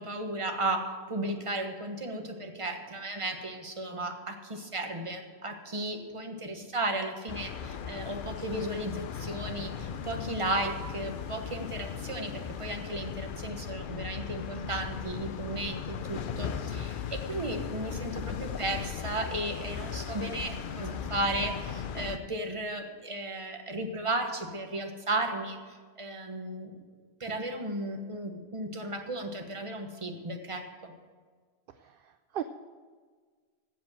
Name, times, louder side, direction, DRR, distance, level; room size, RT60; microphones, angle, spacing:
voice 1, 0.0-26.7 27.2-30.9, right 1 dB, 30° right, 4 dB, 1.3 m, -35 dB
sound 1, 7.3-22.2, left 7 dB, 60° left, 0.7 m, -37 dB
voice 2, 31.7-32.4, right 11 dB, 65° right, 9 dB, 0.7 m, -38 dB
15.5 x 5.2 x 7.5 m, 1.5 s
omnidirectional pair, 1.1 m